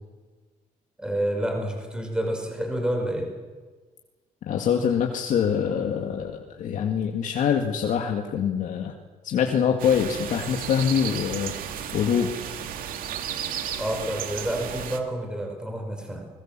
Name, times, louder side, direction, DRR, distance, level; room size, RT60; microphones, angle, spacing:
voice 1, 1.0-3.3 13.8-16.3, right 1 dB, 5° right, 2 dB, 5.3 m, -29 dB
voice 2, 4.5-8.9 9.2-11.5 11.9-12.5, left 7 dB, 60° left, 3 dB, 2.1 m, -24 dB
sound 1, 9.8-15.0, right 9 dB, 75° right, 2.4 m, -34 dB
29.0 x 21.0 x 7.6 m, 1.4 s
cardioid pair, 140°, 14 cm